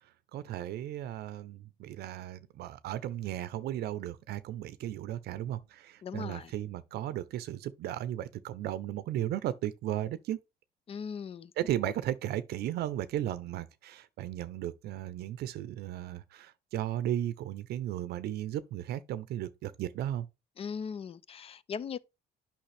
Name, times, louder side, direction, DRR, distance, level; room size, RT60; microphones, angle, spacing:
voice 1, 0.0-10.4 11.6-20.3, right 12 dB, 70° right, 0.6 m, -35 dB
voice 2, 6.0-6.5 10.9-11.5 11.8-11.9 20.6-22.0, left 6 dB, 35° left, 0.5 m, -39 dB
8.8 x 5.6 x 3.3 m
cardioid pair, 110°, 17 cm